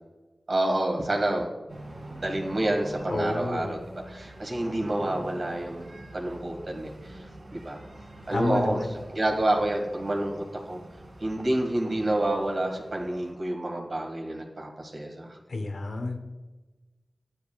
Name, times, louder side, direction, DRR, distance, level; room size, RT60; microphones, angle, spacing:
voice 1, 0.5-1.5 2.1-3.8 4.1-7.8 8.3-8.8 9.1-10.8 11.2-15.4, right 1 dB, 60° right, 1 dB, 2.0 m, -28 dB
sound 1, 1.7-13.3, right 1 dB, 75° right, 2.3 m, -45 dB
voice 2, 3.1-3.7 8.3-8.9 15.5-16.2, left 2 dB, 80° left, 4 dB, 1.1 m, -29 dB
12.0 x 7.7 x 2.4 m, 1.2 s
wide cardioid pair, 55°, 0 cm